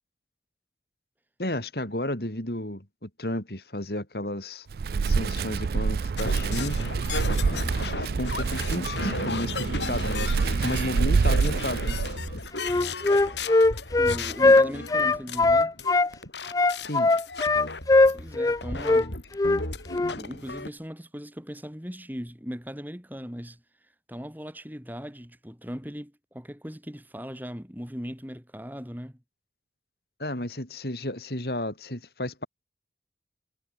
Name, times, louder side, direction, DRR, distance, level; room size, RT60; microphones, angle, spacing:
voice 1, 1.4-4.7 5.0-6.8 7.8-10.3 10.6-12.0 16.8-17.1 30.2-32.5, left 1 dB, 65° left, 4.5 m, -32 dB
Wind, 4.7-12.5, right 5 dB, 60° right, 0.3 m, -26 dB
sound 1, 6.2-20.7, left 3 dB, 85° left, 7.5 m, -35 dB
Wind instrument woodwind instrument, 12.6-16.1 16.5-18.6 18.8-19.0 19.4-19.6 19.9-20.1, left 2 dB, 20° left, 0.3 m, -20 dB
voice 2, 14.0-15.8 18.1-19.1 20.2-23.6 24.1-29.2, equal, 10° right, 4.7 m, -38 dB
head